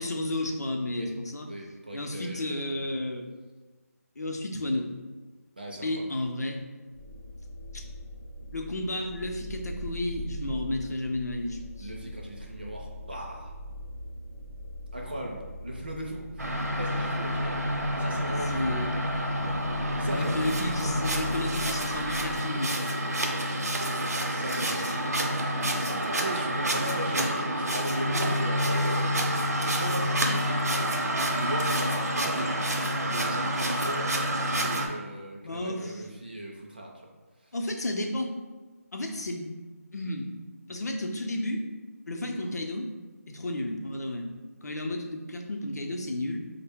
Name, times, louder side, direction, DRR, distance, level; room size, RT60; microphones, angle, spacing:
voice 1, 0.0-1.5 1.9-3.2 4.2-4.9 5.8-6.6 7.7-7.8 8.5-11.9 18.5-18.9 20.1-22.8 24.5-25.0 35.4-36.0 37.5-38.3 38.9-39.5 39.9-40.3 40.7-41.6 42.1-42.9 43.3-44.3 44.6-46.4, left 1 dB, 80° left, 3 dB, 0.6 m, -32 dB
voice 2, 1.5-3.0 5.6-6.1 11.8-13.5 14.9-17.6 18.0-18.8 20.0-20.8 24.3-25.2 25.7-29.0 29.5-30.6 31.3-32.6 33.0-34.2 34.6-37.0 37.4-37.5, right 1 dB, 35° right, -1 dB, 0.4 m, -38 dB
sound 1, 6.9-22.4, left 1 dB, 30° left, 0.5 m, -42 dB
sound 2, 16.4-34.9, equal, 75° right, 0.7 m, -28 dB
4.4 x 2.1 x 3.4 m, 1.3 s
figure-of-eight pair, 180°, 9 cm